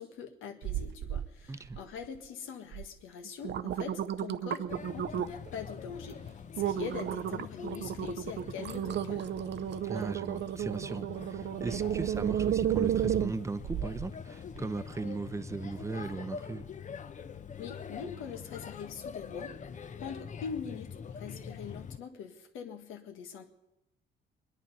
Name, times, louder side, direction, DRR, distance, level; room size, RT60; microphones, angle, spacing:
voice 1, 0.0-9.3 17.6-19.5 20.0-23.4, left 6 dB, 90° left, 5 dB, 1.6 m, -43 dB
sound 1, 0.6-1.3 1.6-2.2 2.7-2.9 3.2-5.5 6.0-6.1 6.6-14.1 14.6-14.7, right 10 dB, 60° right, 0.6 m, -33 dB
voice 2, 1.5-1.8 9.8-16.7, right 3 dB, 15° right, 11 dB, 0.7 m, -38 dB
Male speech man speaking / Child speech kid speaking / Chatter, 4.7-22.0, left 6 dB, 40° left, 0.7 m, -45 dB
22.5 x 10.5 x 5.5 m, 0.91 s
cardioid pair, 90°, 20 cm